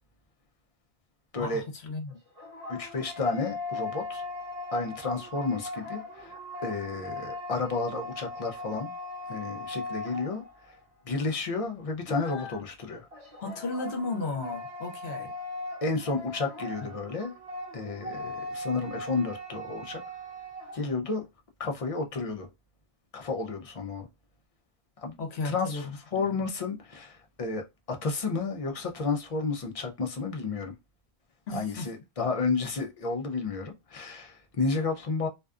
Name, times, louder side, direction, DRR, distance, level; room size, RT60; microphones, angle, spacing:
voice 1, 1.4-2.2 12.2-12.6 13.4-15.3 25.2-26.2 31.5-31.9, left 3 dB, 70° left, 1.0 m, -35 dB
sound 1, 2.1-10.8 13.1-20.9, left 1 dB, 35° right, 0.8 m, -39 dB
voice 2, 2.7-4.2 4.7-8.9 9.3-10.8 11.0-13.1 15.8-17.3 17.7-20.0 20.7-21.2 21.6-22.5 23.1-24.1 25.0-25.2 25.4-30.7 31.5-35.3, left 4 dB, 50° left, 0.4 m, -31 dB
2.5 x 2.3 x 2.3 m
omnidirectional pair, 1.1 m